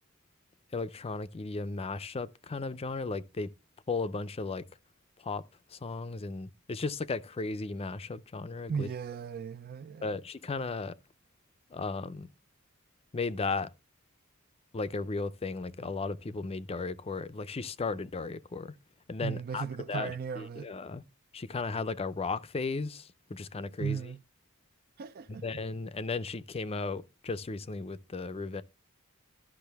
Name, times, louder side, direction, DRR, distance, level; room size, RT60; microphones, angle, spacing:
voice 1, 0.7-3.5 3.9-4.7 5.2-5.4 5.7-8.9 10.0-11.0 11.7-12.3 13.1-13.7 14.7-18.7 19.1-21.0 21.3-24.0 25.3-28.6, left 3 dB, 30° left, 0.5 m, -35 dB
voice 2, 8.7-10.2 19.2-20.7 23.8-24.2 25.0-25.5, right 6 dB, 45° right, 0.4 m, -36 dB
12.0 x 6.1 x 3.4 m
head